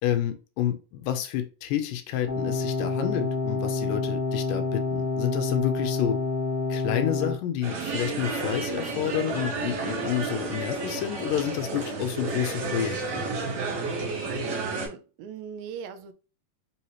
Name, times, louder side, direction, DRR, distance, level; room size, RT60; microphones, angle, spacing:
voice 1, 0.0-6.2 6.7-13.3, left 11 dB, 80° left, 2.1 m, -29 dB
sound 1, 2.3-7.3, left 4 dB, 40° left, 1.3 m, -28 dB
sound 2, 7.6-14.9, right 3 dB, 55° right, 2.0 m, -31 dB
voice 2, 14.4-16.1, right 7 dB, 80° right, 2.4 m, -39 dB
5.4 x 2.8 x 3.0 m
omnidirectional pair, 4.1 m